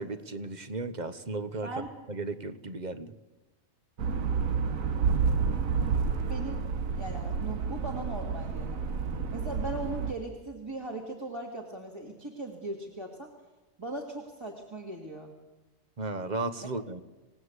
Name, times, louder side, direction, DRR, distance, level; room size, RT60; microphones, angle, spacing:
voice 1, 0.0-1.7 2.1-3.1 16.0-17.0, right 3 dB, 35° right, 11 dB, 1.2 m, -35 dB
sound 1, 4.0-10.1, right 5 dB, 85° right, 1.6 m, -29 dB
voice 2, 6.2-6.6 6.9-8.8 9.3-13.3 13.8-15.3, right 2 dB, 20° right, 0 dB, 2.3 m, -39 dB
27.0 x 18.0 x 8.2 m, 1.2 s
omnidirectional pair, 1.4 m